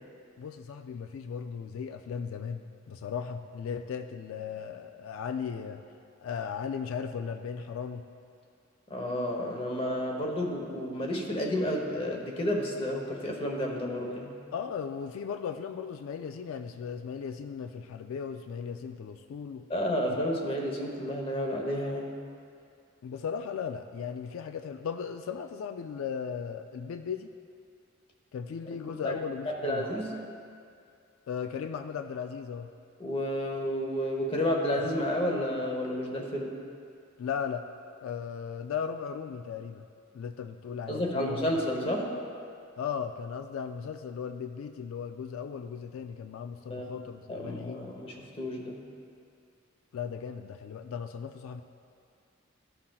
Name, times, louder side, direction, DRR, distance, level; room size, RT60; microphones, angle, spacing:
voice 1, 0.4-5.8 6.2-8.1 14.5-19.7 23.0-27.3 28.3-29.8 31.3-32.7 37.2-37.6 38.0-39.8 40.1-41.4 42.8-47.9 49.9-51.6, left 7 dB, 80° left, 7 dB, 0.3 m, -37 dB
voice 2, 8.9-14.4 19.7-22.1 28.7-28.8 29.0-29.2 29.5-30.2 33.0-36.5 40.9-42.1 46.7-46.9 47.3-48.8, equal, 25° left, 1 dB, 0.9 m, -31 dB
14.5 x 5.6 x 2.3 m, 2.4 s
head